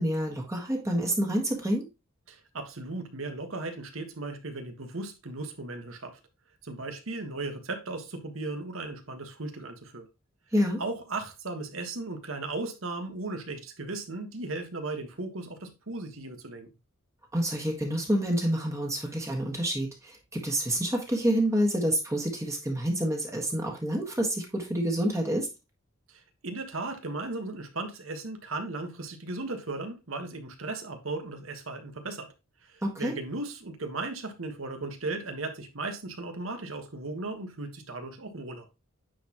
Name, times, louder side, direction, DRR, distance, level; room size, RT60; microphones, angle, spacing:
voice 1, 0.0-1.9 10.5-10.8 17.3-25.5 32.8-33.2, equal, 15° right, 1.5 m, -28 dB
voice 2, 2.3-6.2 6.6-10.1 10.8-16.7 26.1-32.3 32.6-38.7, right 2 dB, 75° right, 1.4 m, -36 dB
9.2 x 4.2 x 3.0 m
head